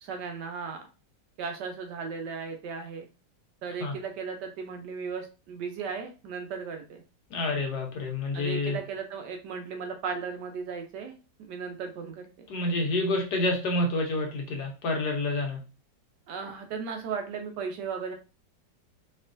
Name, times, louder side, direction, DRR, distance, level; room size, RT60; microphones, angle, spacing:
voice 1, 0.0-0.8 1.4-3.1 3.6-7.0 8.3-11.1 11.5-12.5 16.3-18.1, right 5 dB, 70° right, 4 dB, 1.1 m, -36 dB
voice 2, 7.3-8.8 12.5-15.6, left 2 dB, 65° left, 2 dB, 1.3 m, -28 dB
4.3 x 3.0 x 2.5 m, 0.33 s
omnidirectional pair, 2.0 m